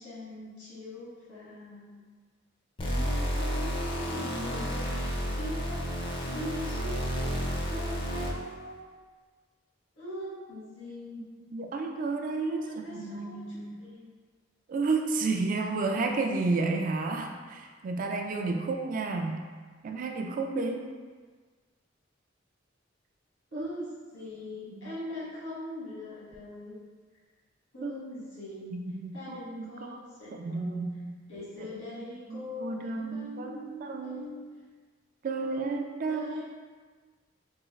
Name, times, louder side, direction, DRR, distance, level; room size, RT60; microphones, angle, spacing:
voice 1, 0.0-2.0 2.8-8.9 9.9-11.3 12.4-14.1 23.5-23.9 24.1-26.8 27.7-28.8 29.1-30.8 31.3-34.4 35.3-35.8 36.1-36.4, left 1 dB, 85° left, -9 dB, 1.5 m, -41 dB
sound 1, 2.8-8.5, equal, 25° left, 0.4 m, -31 dB
voice 2, 11.5-13.7 14.7-19.5 19.8-20.9 23.5-23.7 24.7-24.9 27.8-28.0 28.7-30.0 30.3-31.2 32.3-34.4 35.2-36.3, right 3 dB, 45° right, 4 dB, 0.3 m, -32 dB
3.6 x 2.3 x 3.0 m, 1.5 s
head